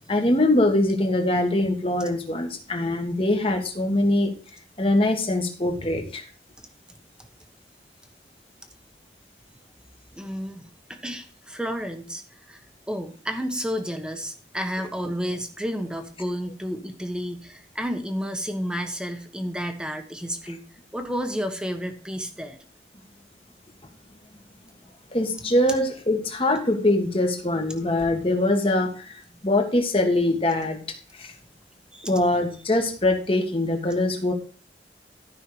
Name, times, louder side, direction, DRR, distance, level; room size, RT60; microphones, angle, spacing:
voice 1, 0.1-4.3 4.8-6.2 25.1-30.8 31.2-31.3 32.0-34.3, left 1 dB, 30° left, 4 dB, 1.8 m, -23 dB
voice 2, 10.1-12.2 12.5-12.6 12.9-20.6 20.9-22.6 29.3-29.4 31.9-32.1, equal, 5° right, 5 dB, 1.2 m, -31 dB
13.5 x 5.7 x 4.9 m, 0.38 s
head